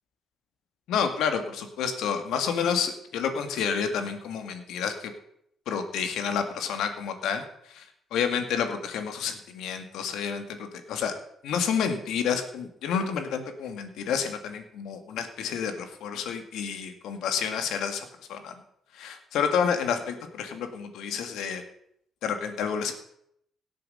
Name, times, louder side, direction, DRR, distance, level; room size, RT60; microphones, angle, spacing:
voice 1, 0.9-5.1 5.7-7.8 8.1-11.1 11.4-18.5 18.9-21.6 22.2-22.9, left 7 dB, 85° left, 7 dB, 2.0 m, -29 dB
17.0 x 7.6 x 5.6 m, 0.73 s
cardioid pair, 90°, 0 cm